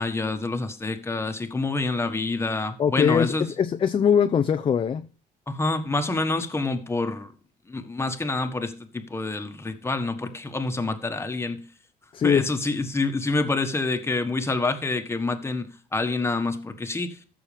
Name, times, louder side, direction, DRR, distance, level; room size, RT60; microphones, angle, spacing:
voice 1, 0.0-3.5 5.5-7.3 7.7-11.6 12.2-17.2, left 3 dB, 15° left, 1.4 m, -27 dB
voice 2, 2.8-5.1 12.1-12.5, left 7 dB, 30° left, 0.5 m, -21 dB
14.5 x 6.3 x 3.4 m
cardioid pair, 110°, 17 cm